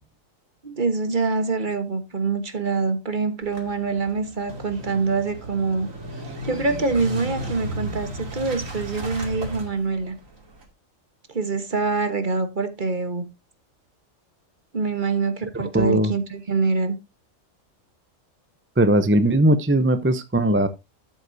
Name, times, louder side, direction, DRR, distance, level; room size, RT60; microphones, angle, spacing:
voice 1, 0.6-5.9 6.1-10.1 11.3-13.3 14.7-17.0, right 4 dB, 40° right, 1.4 m, -25 dB
Motorcycle / Engine starting, 3.4-10.6, right 1 dB, 85° right, 2.9 m, -34 dB
voice 2, 15.5-16.1 18.8-20.7, right 1 dB, 15° right, 0.5 m, -19 dB
13.5 x 8.0 x 2.7 m
omnidirectional pair, 1.3 m